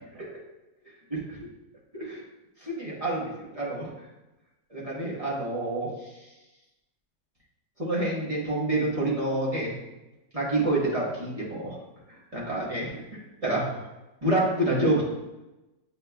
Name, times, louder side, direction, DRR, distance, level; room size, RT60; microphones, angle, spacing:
voice 1, 1.1-1.5 1.9-2.2 2.6-3.9 4.7-5.9 7.8-9.7 10.3-11.7 12.3-13.0 13.4-13.8 14.2-15.0, right 1 dB, 30° right, -6 dB, 0.9 m, -28 dB
7.8 x 2.8 x 2.3 m, 1.0 s
omnidirectional pair, 1.5 m